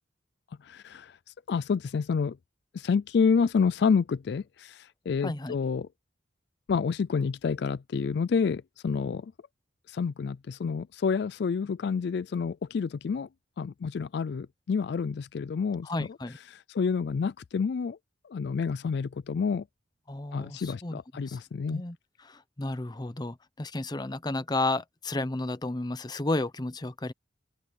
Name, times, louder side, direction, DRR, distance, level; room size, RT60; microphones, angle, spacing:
voice 1, 0.7-1.1 1.5-2.4 2.7-5.9 6.7-9.3 9.9-13.3 13.6-15.9 16.5-18.0 18.3-19.6 20.3-21.8, left 5 dB, 60° left, 0.3 m, -28 dB
voice 2, 5.2-5.5 15.8-16.4 20.1-21.4 21.7-27.1, left 2 dB, 20° left, 0.7 m, -33 dB
open air
head